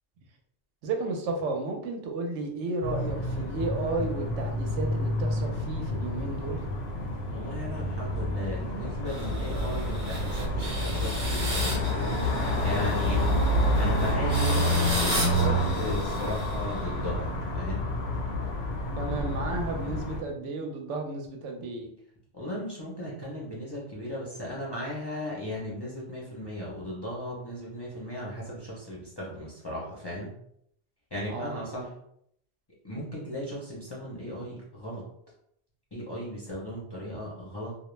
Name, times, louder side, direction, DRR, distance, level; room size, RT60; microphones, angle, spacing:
voice 1, 0.8-6.6 9.8-9.9 19.0-21.9 31.3-31.8, right 2 dB, 90° right, 2 dB, 0.9 m, -33 dB
sound 1, 2.8-20.2, left 1 dB, 85° left, 1.0 m, -28 dB
voice 2, 7.3-12.3 12.6-13.4 13.8-17.9 22.3-30.3 31.1-31.9 32.8-35.0 35.9-37.8, equal, 35° left, -6 dB, 0.4 m, -36 dB
sound 2, 9.1-17.0, right 1 dB, 40° right, 0.5 m, -35 dB
2.3 x 2.1 x 3.1 m, 0.70 s
omnidirectional pair, 1.2 m